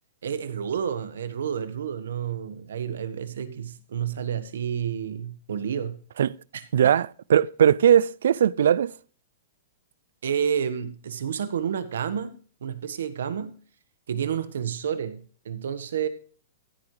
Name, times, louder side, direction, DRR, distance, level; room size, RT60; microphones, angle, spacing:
voice 1, 0.2-6.0 6.5-6.9 10.2-13.6 14.1-16.1, right 8 dB, 90° right, 1.3 m, -30 dB
voice 2, 6.7-8.9, right 9 dB, 70° right, 0.4 m, -19 dB
14.5 x 8.6 x 3.2 m
hypercardioid pair, 175°, 0 cm